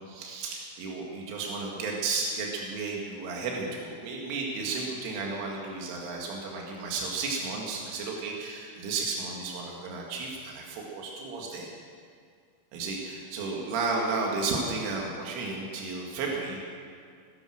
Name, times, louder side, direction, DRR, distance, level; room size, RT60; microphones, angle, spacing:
voice 1, 0.0-11.7 12.7-16.6, right 3 dB, 80° right, -1 dB, 4.4 m, -33 dB
22.0 x 10.5 x 6.3 m, 2.1 s
omnidirectional pair, 5.6 m